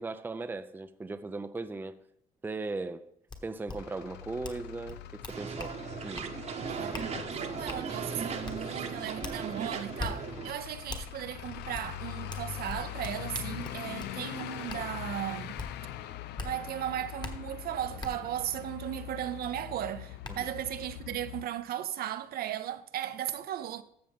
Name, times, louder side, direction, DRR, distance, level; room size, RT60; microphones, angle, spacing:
voice 1, 0.0-2.0 2.4-3.1 3.4-5.7 6.0-6.3 20.3-20.4, right 3 dB, 10° right, 0.5 m, -38 dB
sound 1, 3.3-3.4 3.7-3.8 4.4-4.6 4.9-5.7 6.2-6.3 6.9-7.1 7.7-7.8 8.4-8.6 9.2-9.4 10.0-10.1 10.9-11.0 11.7-11.9 12.3-14.1 14.7-14.8 15.6-15.7 16.4-16.5 17.2-17.3 18.0-18.1 19.6-19.7 20.2-20.3, left 3 dB, 25° left, 1.4 m, -39 dB
Truck / Idling, 3.7-21.4, left 12 dB, 80° left, 0.7 m, -43 dB
sound 2, 5.3-10.5, right 5 dB, 40° right, 1.1 m, -37 dB
voice 2, 6.7-15.6 16.4-23.8, right 11 dB, 65° right, 0.8 m, -36 dB
13.0 x 6.9 x 3.6 m
cardioid pair, 110°, 17 cm